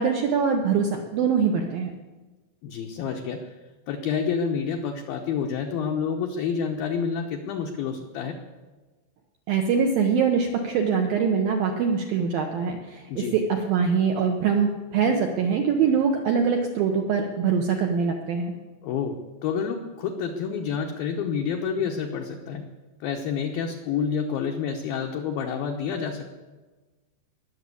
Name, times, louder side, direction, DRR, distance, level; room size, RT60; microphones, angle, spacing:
voice 1, 0.0-1.9 9.5-18.5, right 6 dB, 75° right, 3 dB, 2.1 m, -23 dB
voice 2, 2.6-3.5 3.9-8.4 13.1-13.3 18.8-22.6 23.0-26.3, left 6 dB, 75° left, 2 dB, 2.2 m, -28 dB
20.5 x 7.1 x 8.5 m, 1.3 s
omnidirectional pair, 5.5 m